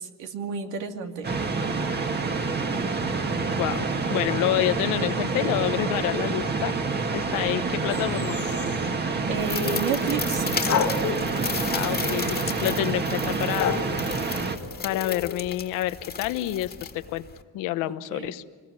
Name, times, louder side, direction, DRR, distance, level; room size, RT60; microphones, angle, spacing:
voice 1, 0.0-1.3 9.3-10.4 17.8-18.4, right 5 dB, 85° right, 4 dB, 2.6 m, -31 dB
sound 1, 1.2-14.6, right 4 dB, 35° right, 2.0 m, -27 dB
voice 2, 3.6-6.7 7.1-8.5 11.7-13.8 14.8-17.2 17.5-18.4, left 14 dB, 90° left, 13 dB, 1.1 m, -28 dB
sound 2, 7.9-8.9 10.7-12.5 13.6-15.8, left 8 dB, 65° left, 1.7 m, -32 dB
sound 3, 9.3-17.4, left 6 dB, 30° left, 1.9 m, -35 dB
26.0 x 21.0 x 9.7 m, 1.5 s
cardioid pair, 115°, 31 cm